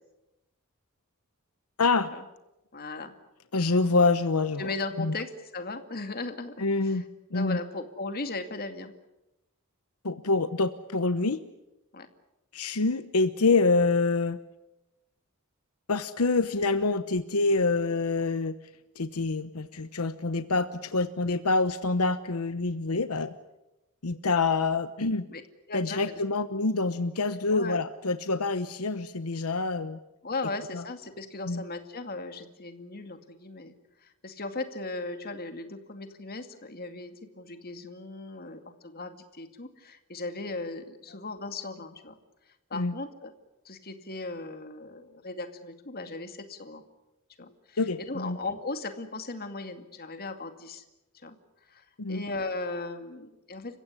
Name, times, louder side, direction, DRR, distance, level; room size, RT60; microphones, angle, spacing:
voice 1, 1.8-2.1 3.5-4.7 5.0-5.1 6.6-7.0 7.3-7.6 10.0-11.4 12.5-14.4 15.9-18.6 19.0-23.3 24.0-25.2 25.7-30.0 30.7-30.8 31.5-31.6 42.7-42.9 47.8-48.4 52.0-52.2, left 3 dB, 80° left, 12 dB, 1.0 m, -26 dB
voice 2, 2.7-3.1 4.6-7.0 7.3-8.9 11.9-12.1 25.3-25.4 25.7-26.1 27.5-27.8 30.2-33.7 34.0-42.2 42.7-43.3 43.6-46.8 47.4-50.8 51.2-51.4 51.7-53.8, left 3 dB, 45° left, 7 dB, 2.3 m, -37 dB
29.5 x 16.0 x 9.7 m, 0.96 s
head